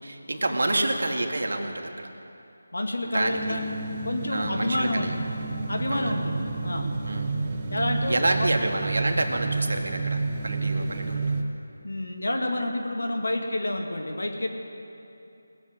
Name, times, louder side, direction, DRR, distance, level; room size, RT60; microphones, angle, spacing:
voice 1, 0.0-2.1 3.0-3.6 4.3-5.1 5.9-6.1 7.1-7.3 8.1-11.3, right 2 dB, 70° right, 3 dB, 1.6 m, -28 dB
voice 2, 2.7-3.7 4.0-5.1 5.7-6.9 7.7-8.5 11.8-14.5, left 1 dB, 85° left, 2 dB, 2.0 m, -29 dB
sound 1, 3.2-11.4, right 3 dB, 30° right, 0.9 m, -30 dB
19.0 x 7.4 x 8.1 m, 2.8 s
figure-of-eight pair, 165°, 0 cm